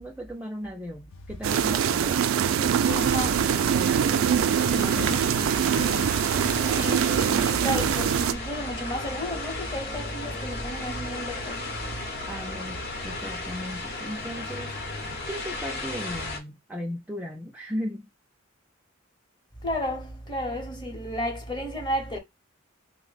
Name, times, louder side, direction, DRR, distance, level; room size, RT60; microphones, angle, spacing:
voice 1, 0.0-2.7 3.3-4.2 4.6-5.4 12.3-12.8 13.0-14.7 15.3-18.1, equal, 5° right, 0.3 m, -36 dB
sound 1, 1.1-8.5, left 5 dB, 90° left, 0.4 m, -43 dB
sound 2, 1.4-8.3, right 8 dB, 85° right, 0.3 m, -23 dB
sound 3, 2.8-16.4, left 2 dB, 50° left, 0.9 m, -35 dB
voice 2, 2.9-3.4 5.8-5.9 6.4-11.9 19.6-22.2, equal, 20° left, 0.8 m, -32 dB
3.3 x 2.1 x 3.9 m
head